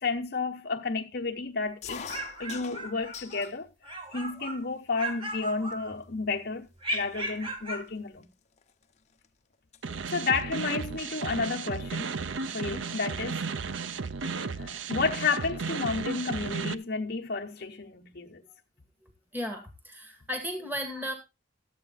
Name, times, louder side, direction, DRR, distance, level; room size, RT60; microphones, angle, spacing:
voice 1, 0.0-2.1 2.4-6.7 6.9-8.2 10.1-12.1 12.5-13.5 14.5-18.4, left 4 dB, 55° left, 1.0 m, -31 dB
sound 1, 1.8-3.6 4.0-4.6 5.3-5.4 5.7-6.0 6.7-6.8 7.0-9.3 9.5-9.8 11.2-11.4 12.5-12.6 12.9-13.0 13.2-14.1, left 6 dB, 35° left, 0.9 m, -45 dB
sound 2, 1.8-3.5 3.8-4.6 5.0-6.2 6.8-7.9, right 1 dB, 30° right, 1.8 m, -36 dB
sound 3, 9.8-16.7, right 4 dB, 85° right, 0.7 m, -34 dB
voice 2, 19.0-21.1, equal, 10° right, 1.9 m, -35 dB
13.0 x 8.3 x 4.0 m
head